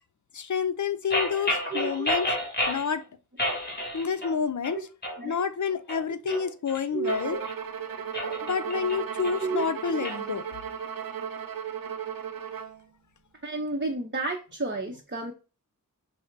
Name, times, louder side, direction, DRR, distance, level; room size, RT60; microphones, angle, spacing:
voice 1, 0.3-2.4 2.7-3.0 3.9-4.9 5.2-7.4 8.4-10.4, left 6 dB, 60° left, 0.5 m, -29 dB
sound 1, 1.1-2.9 3.4-4.4 4.6-5.2 5.7-7.5 8.0-10.2, left 1 dB, 30° left, 1.2 m, -31 dB
voice 2, 1.7-2.1 5.2-5.3 6.2-6.4 6.9-7.4 9.2-9.7 13.4-15.3, right 3 dB, 35° right, 0.7 m, -32 dB
Bowed string instrument, 7.0-12.8, right 8 dB, 85° right, 0.5 m, -35 dB
5.5 x 2.1 x 3.2 m
wide cardioid pair, 40°, 34 cm